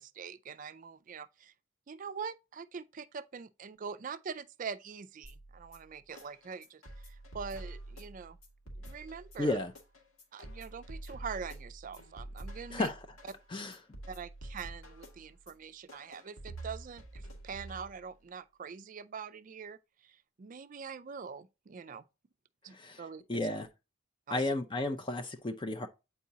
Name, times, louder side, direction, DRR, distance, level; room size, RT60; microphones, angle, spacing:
voice 1, 0.0-1.5 1.9-8.4 8.8-9.6 10.3-12.9 14.1-22.0 22.6-23.5 24.3-24.4, right 6 dB, 40° right, 0.4 m, -44 dB
sound 1, 5.2-18.2, right 1 dB, 90° left, 2.1 m, -48 dB
voice 2, 9.4-9.7 12.7-13.1 13.5-13.8 22.7-23.0 23.3-23.7 24.3-25.9, left 2 dB, 25° left, 0.4 m, -33 dB
8.3 x 4.6 x 2.8 m
head